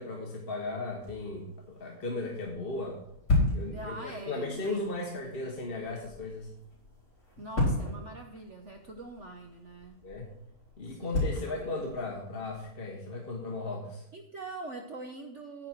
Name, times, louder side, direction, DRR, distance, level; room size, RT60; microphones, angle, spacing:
voice 1, 0.0-3.0 3.5-6.5 10.0-10.3 10.8-14.0, left 2 dB, 35° left, 0 dB, 1.2 m, -36 dB
sound 1, 1.0-12.7, left 2 dB, 50° left, 4.6 m, -35 dB
voice 2, 3.7-4.9 7.4-10.0 10.9-11.8 12.2-12.3 14.1-15.7, right 2 dB, 60° right, 4 dB, 0.7 m, -43 dB
9.7 x 9.0 x 4.6 m, 0.77 s
omnidirectional pair, 2.3 m